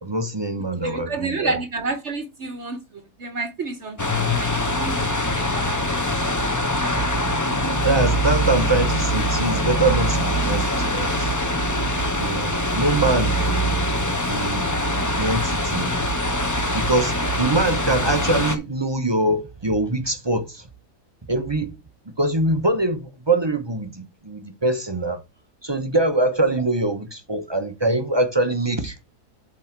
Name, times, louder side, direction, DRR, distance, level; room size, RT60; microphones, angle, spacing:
voice 1, 0.0-1.6 7.8-11.3 12.2-13.4 14.3-14.7 15.2-16.0 16.7-20.7 21.3-21.7 22.2-25.2 25.6-29.0, right 2 dB, 35° right, 0.4 m, -23 dB
voice 2, 0.8-4.0 4.3-6.0, right 3 dB, 55° right, 1.0 m, -30 dB
sound 1, 4.0-18.6, equal, 15° left, 0.6 m, -23 dB
7.5 x 4.3 x 4.5 m
omnidirectional pair, 1.7 m